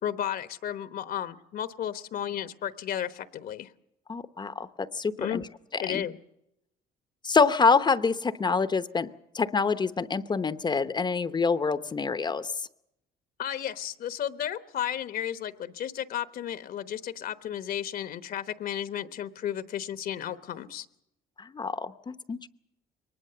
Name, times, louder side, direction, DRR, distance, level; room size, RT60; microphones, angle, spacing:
voice 1, 0.0-3.7 5.2-5.4 5.8-6.2 13.4-20.9, left 10 dB, 60° left, 11 dB, 1.0 m, -33 dB
voice 2, 4.1-5.4 5.9-6.0 7.2-9.1 9.3-12.5 21.4-22.5, left 5 dB, 25° left, 12 dB, 0.8 m, -26 dB
22.5 x 19.5 x 6.8 m, 0.81 s
cardioid pair, 110°, 17 cm